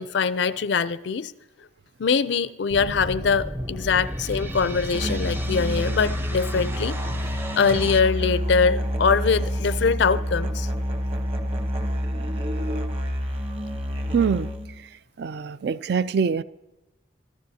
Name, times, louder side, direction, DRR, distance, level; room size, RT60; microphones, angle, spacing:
voice 1, 0.0-1.3 2.0-7.0 7.6-10.7, left 5 dB, 65° left, 0.4 m, -23 dB
sound 1, 2.7-8.0, equal, 10° right, 0.6 m, -33 dB
Musical instrument, 4.9-14.7, equal, 30° right, 1.1 m, -28 dB
voice 2, 14.1-14.9 15.2-16.4, right 6 dB, 55° right, 0.4 m, -25 dB
25.5 x 14.0 x 2.8 m
head